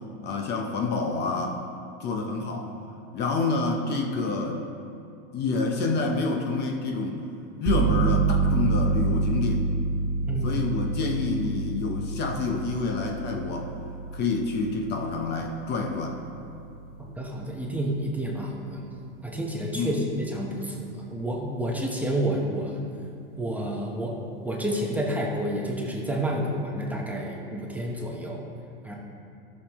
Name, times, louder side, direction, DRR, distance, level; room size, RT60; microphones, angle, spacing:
voice 1, 0.2-1.6 2.0-2.7 3.1-4.6 5.3-7.2 7.6-9.6 10.4-13.7 14.1-16.2 19.7-20.0, left 3 dB, 35° left, 2 dB, 0.9 m, -28 dB
sound 1, 7.7-18.2, right 4 dB, 30° right, 1.2 m, -28 dB
voice 2, 10.3-10.6 17.2-18.8 19.2-22.8 23.4-24.2 24.4-28.4 28.8-28.9, right 1 dB, 5° right, -2 dB, 1.0 m, -29 dB
13.0 x 6.5 x 3.0 m, 2.5 s
supercardioid pair, 130°, 30 cm